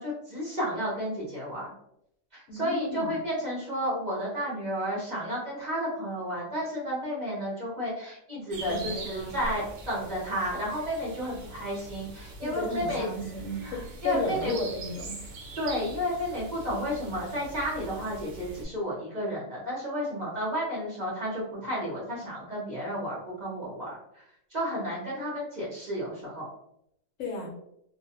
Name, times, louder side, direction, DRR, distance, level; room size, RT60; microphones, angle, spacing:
voice 1, 0.0-1.7 2.3-13.1 13.6-14.5 15.6-24.2 24.5-26.5, equal, 40° right, -7 dB, 0.8 m, -32 dB
voice 2, 2.5-3.1 8.7-9.4 12.4-15.2 27.2-27.5, left 2 dB, 75° left, 0 dB, 0.9 m, -33 dB
sound 1, 8.5-18.7, right 2 dB, 80° right, 1.0 m, -43 dB
2.4 x 2.1 x 2.8 m, 0.76 s
omnidirectional pair, 1.4 m